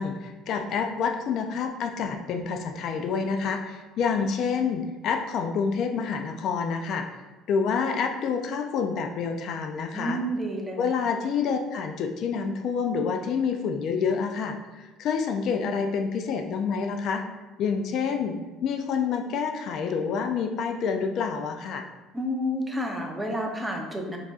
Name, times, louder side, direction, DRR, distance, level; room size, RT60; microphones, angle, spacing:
voice 1, 0.0-7.2 7.5-10.2 10.8-17.2 17.6-21.9, left 6 dB, 55° left, 5 dB, 0.4 m, -28 dB
voice 2, 9.9-10.9 22.1-24.2, equal, 5° right, 0 dB, 0.7 m, -30 dB
4.8 x 4.0 x 2.4 m, 1.2 s
cardioid pair, 130°, 0 cm